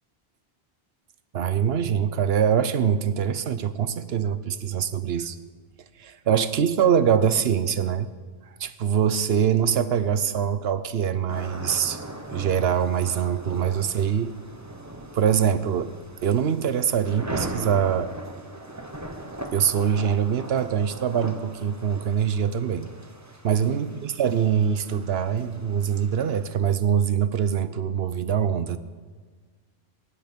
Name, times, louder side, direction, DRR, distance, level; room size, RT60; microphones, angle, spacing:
voice 1, 1.3-5.4 6.0-8.1 8.6-12.0 12.3-14.3 15.1-15.9 16.2-18.1 19.5-22.9 23.4-28.8, right 8 dB, 70° right, 13 dB, 1.0 m, -23 dB
sound 1, 11.3-26.6, right 1 dB, 15° right, 1.0 m, -39 dB
22.0 x 10.0 x 5.2 m, 1.5 s
omnidirectional pair, 1.1 m